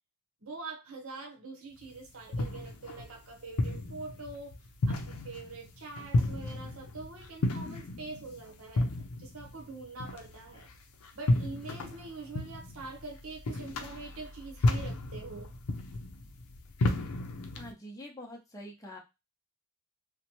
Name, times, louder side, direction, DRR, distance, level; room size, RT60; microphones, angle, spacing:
voice 1, 0.4-4.5 4.9-8.9 9.2-10.7 11.1-15.5, right 3 dB, 75° right, 0.8 m, -44 dB
sound 1, 1.8-17.7, left 2 dB, 85° left, 0.5 m, -33 dB
voice 2, 17.6-19.0, equal, 15° left, 0.7 m, -45 dB
2.7 x 2.1 x 2.9 m
head